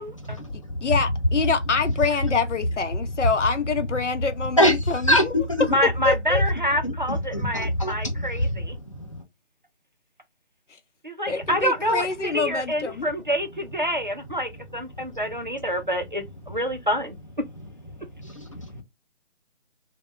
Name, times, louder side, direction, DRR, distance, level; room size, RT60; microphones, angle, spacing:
sound 1, 0.7-8.8, equal, ahead, 0.9 m, -28 dB
voice 1, 0.8-5.3 6.0-6.4 11.3-13.1, left 5 dB, 75° left, 0.8 m, -26 dB
voice 2, 4.6-5.2 6.8-8.6 8.9-9.2 18.2-18.8, equal, 25° left, 0.6 m, -24 dB
voice 3, 5.7-8.8 11.0-17.2, equal, 45° right, 0.4 m, -27 dB
2.9 x 2.1 x 3.0 m
figure-of-eight pair, 170°, 36 cm